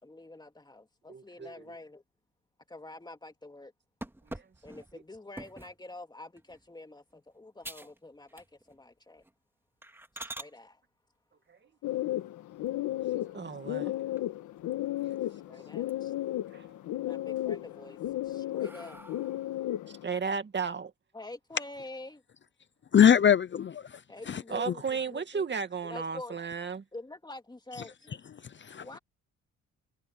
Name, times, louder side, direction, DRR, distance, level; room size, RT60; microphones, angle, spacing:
voice 1, 0.0-2.0 2.7-3.7 4.6-9.2 10.1-10.8 13.8-14.2 15.3-16.1 17.0-19.0 21.1-22.2 24.1-25.4 25.8-26.4 26.9-28.2 28.8-29.0, left 2 dB, 15° left, 2.5 m, -46 dB
voice 2, 1.1-1.6 4.2-4.5 11.5-11.7 13.1-13.9 16.5-16.7 19.9-20.9 24.5-26.8, right 5 dB, 35° right, 2.4 m, -35 dB
sound 1, 4.0-5.8 6.4-6.7 7.1-7.2 7.6-8.0 8.3-8.8 9.2-9.3 9.8-10.5 12.5-13.2 13.7-13.8 14.2-14.3 14.6-15.4 15.7-16.3 16.7-17.3 17.9-19.6, right 1 dB, 5° right, 2.4 m, -46 dB
sound 2, 11.8-20.0, left 14 dB, 80° left, 1.7 m, -34 dB
voice 3, 22.9-24.0 24.3-24.7 28.4-28.9, left 8 dB, 40° left, 0.7 m, -23 dB
cardioid pair, 90°, 30 cm